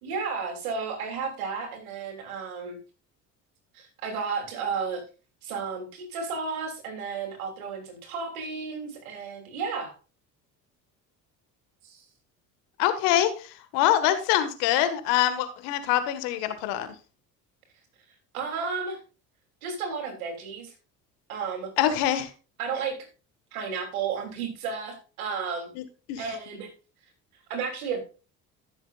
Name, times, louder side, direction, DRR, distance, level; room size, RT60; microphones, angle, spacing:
voice 1, 0.0-2.8 3.7-5.0 5.4-9.9 11.8-12.0 18.3-19.0 19.6-20.7 21.3-21.7 22.6-23.0 23.5-25.7 26.2-26.7 27.5-28.0, right 5 dB, 85° right, 5 dB, 3.1 m, -33 dB
voice 2, 12.8-16.9 21.8-22.3 25.8-25.9 26.1-26.3, left 12 dB, 75° left, 11 dB, 1.8 m, -24 dB
14.5 x 7.2 x 2.4 m, 0.34 s
hypercardioid pair, 60°, 42 cm